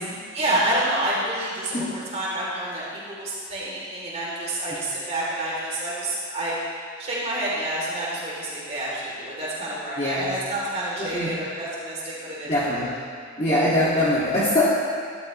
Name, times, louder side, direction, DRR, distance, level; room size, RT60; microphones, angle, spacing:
voice 1, 0.3-6.5 7.0-12.9, right 1 dB, 35° right, -6 dB, 3.3 m, -28 dB
voice 2, 10.0-10.3 11.0-11.3 12.5-12.9 13.4-14.7, left 1 dB, 30° left, -11 dB, 2.2 m, -22 dB
13.0 x 12.5 x 3.2 m, 2.1 s
head